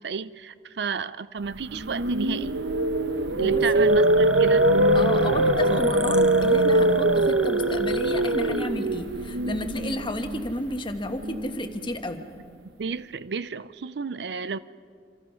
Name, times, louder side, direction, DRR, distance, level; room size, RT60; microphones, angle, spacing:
voice 1, 0.0-2.6 3.4-4.7 12.8-14.6, right 5 dB, 65° right, 0.5 m, -32 dB
sound 1, 1.6-11.7, right 1 dB, 80° right, 1.0 m, -22 dB
voice 2, 3.3-3.6 4.9-12.2, left 1 dB, 25° left, 1.4 m, -32 dB
sound 2, 3.9-8.7, right 1 dB, 5° right, 0.7 m, -39 dB
27.0 x 26.0 x 5.7 m
head